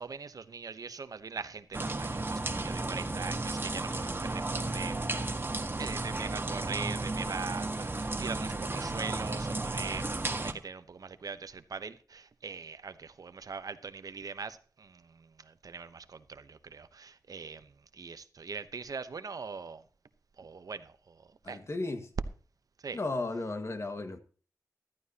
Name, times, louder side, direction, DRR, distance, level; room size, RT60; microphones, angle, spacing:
voice 1, 0.0-5.0 5.8-19.8 20.4-21.6 22.8-23.0, right 5 dB, 65° right, 0.9 m, -42 dB
sound 1, 1.7-10.5, right 2 dB, 35° right, 1.5 m, -33 dB
voice 2, 21.4-22.1 22.9-24.2, left 2 dB, 45° left, 1.8 m, -34 dB
14.5 x 13.5 x 2.9 m
wide cardioid pair, 70°, 7 cm